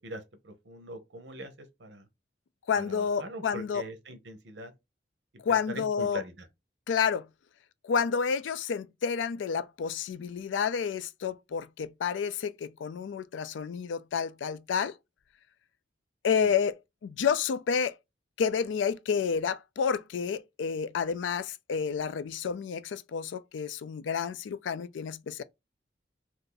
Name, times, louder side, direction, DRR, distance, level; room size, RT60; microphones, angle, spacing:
voice 1, 0.0-1.5 1.8-2.1 2.8-4.7 5.5-6.5 16.4-16.5, right 1 dB, 70° right, 0.8 m, -42 dB
voice 2, 2.7-3.8 5.4-6.2 6.9-7.3 7.8-14.9 16.2-16.8 17.0-17.9 18.4-25.4, left 6 dB, 85° left, 0.3 m, -30 dB
2.6 x 2.5 x 3.8 m
head